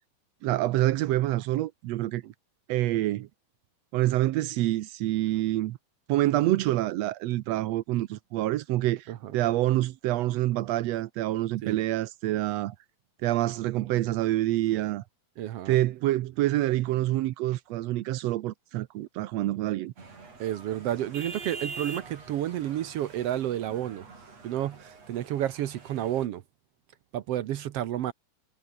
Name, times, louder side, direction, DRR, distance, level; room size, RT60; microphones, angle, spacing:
voice 1, 0.4-2.2 2.7-3.3 3.9-5.8 6.1-12.7 13.2-15.0 15.7-19.9, right 15 dB, 90° right, 1.5 m, -27 dB
voice 2, 15.4-15.8 20.4-24.1 24.4-26.4 27.1-28.1, right 12 dB, 70° right, 1.4 m, -31 dB
sound 1, 20.0-26.3, right 4 dB, 50° right, 6.2 m, -44 dB
omnidirectional pair, 3.9 m